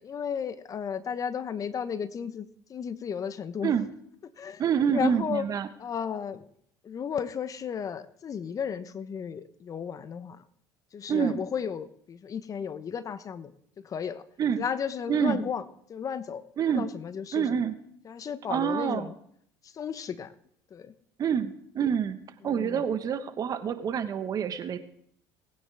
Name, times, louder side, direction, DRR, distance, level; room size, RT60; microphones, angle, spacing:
voice 1, 0.0-3.7 4.4-4.6 4.9-5.4 5.8-6.4 6.8-10.4 10.9-13.5 13.8-14.2 14.6-15.6 15.9-16.4 16.7-17.5 18.0-19.1 19.6-20.3 20.7-20.9 22.4-22.8, left 7 dB, 40° left, 13 dB, 1.0 m, -34 dB
voice 2, 4.6-5.7 11.1-11.4 14.4-14.6 15.1-15.5 16.6-16.9 17.3-17.7 18.5-19.1 21.2-22.2 22.4-24.8, right 7 dB, 45° right, 10 dB, 1.3 m, -27 dB
20.5 x 9.5 x 3.5 m, 0.67 s
hypercardioid pair, 75°, 9 cm